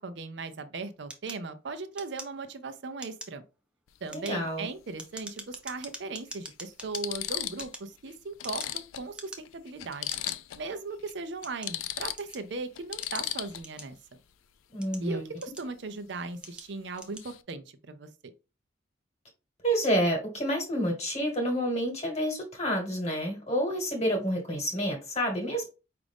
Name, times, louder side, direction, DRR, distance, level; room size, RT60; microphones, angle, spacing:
voice 1, 0.0-3.4 4.0-10.2 10.6-14.0 15.0-18.1, right 3 dB, 60° right, 0.5 m, -38 dB
sound 1, 1.1-2.6 2.9-3.4 3.9-7.0 7.5-8.8 9.1-9.6 10.1-10.4 11.0-12.5 13.0-14.2 14.7-15.9 16.4-16.7 16.9-17.3, right 1 dB, 5° right, 0.5 m, -44 dB
sound 2, 3.9-4.1 5.5-5.6 6.3-6.4 6.8-7.8 8.1-8.2 8.4-10.7 11.0-11.1 11.4-13.8 16.4-16.7 16.9-17.4, left 13 dB, 90° left, 0.4 m, -36 dB
voice 2, 4.1-4.7 14.7-15.3 19.6-25.7, equal, 35° left, 1.2 m, -29 dB
5.0 x 2.5 x 3.4 m
head